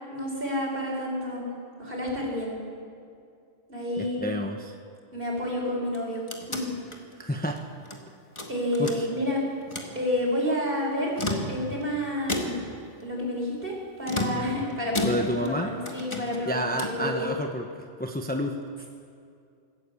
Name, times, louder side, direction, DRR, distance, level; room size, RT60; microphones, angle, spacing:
voice 1, 0.1-1.5 1.8-2.5 3.7-4.3 5.1-6.2 6.5-6.7 8.5-9.4 10.0-11.1 11.5-12.7 13.0-13.7 14.0-17.3, left 1 dB, 45° right, -2 dB, 5.4 m, -29 dB
voice 2, 4.0-4.7 7.2-7.6 8.8-9.1 15.0-15.7 16.5-17.7 18.0-18.8, equal, 10° left, 3 dB, 0.9 m, -29 dB
sound 1, 5.8-8.0 8.4-9.3 9.6-10.0 11.0-11.8 12.3-12.8 14.0-15.6 15.8-17.1, left 1 dB, 25° left, 1.9 m, -33 dB
21.5 x 14.5 x 8.5 m, 2.4 s
omnidirectional pair, 1.2 m